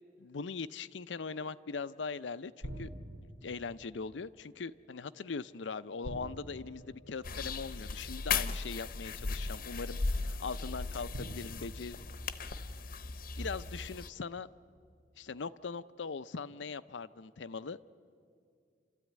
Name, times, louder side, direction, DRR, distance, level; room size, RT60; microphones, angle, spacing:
voice 1, 0.2-2.9 3.4-12.0 13.4-14.5 15.2-17.9, left 4 dB, 85° left, 14 dB, 0.6 m, -41 dB
sound 1, 2.6-3.6 6.0-7.7 8.9-9.0 11.1-12.8, right 1 dB, 85° right, 3.7 m, -46 dB
sound 2, 7.2-14.1, left 4 dB, 50° left, 0.9 m, -37 dB
29.5 x 13.5 x 9.3 m, 2.3 s
head